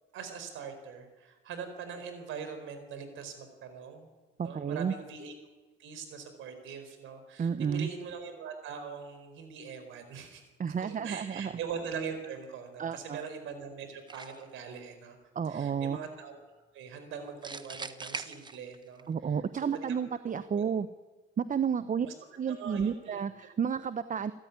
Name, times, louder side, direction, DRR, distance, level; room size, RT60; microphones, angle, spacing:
voice 1, 0.1-4.1 4.4-5.3 5.8-10.4 10.8-15.2 15.4-16.4 16.7-20.6 22.0-22.1 22.5-23.2, right 6 dB, 85° right, 8 dB, 4.6 m, -42 dB
voice 2, 4.4-4.9 7.4-7.9 10.6-11.5 12.8-13.2 15.3-16.0 19.1-20.9 21.4-22.1 22.4-24.3, right 7 dB, 40° right, 13 dB, 0.9 m, -31 dB
sound 1, 14.1-14.6 17.4-19.0, right 3 dB, 20° right, 1.2 m, -41 dB
28.0 x 14.0 x 9.7 m, 1.3 s
cardioid pair, 90°, 20 cm